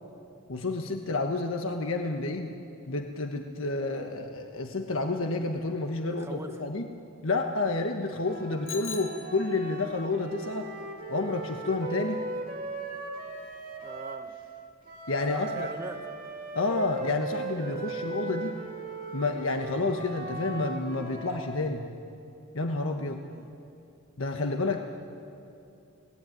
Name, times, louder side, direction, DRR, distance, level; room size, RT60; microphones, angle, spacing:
voice 1, 0.5-2.5 2.9-6.9 7.2-10.7 11.1-12.2 15.1-15.7 16.5-18.6 19.1-21.8 22.5-23.2 24.2-24.8, left 3 dB, 80° left, 4 dB, 1.4 m, -30 dB
voice 2, 6.0-6.6 13.8-14.3 15.3-16.2 23.3-23.5, right 1 dB, 15° right, 5 dB, 1.3 m, -42 dB
sound 1, 8.2-14.3 14.8-21.5, right 3 dB, 40° right, 2.9 m, -38 dB
Bicycle bell, 8.7-9.9, left 7 dB, 60° left, 2.6 m, -41 dB
30.0 x 19.0 x 9.4 m, 2.7 s
head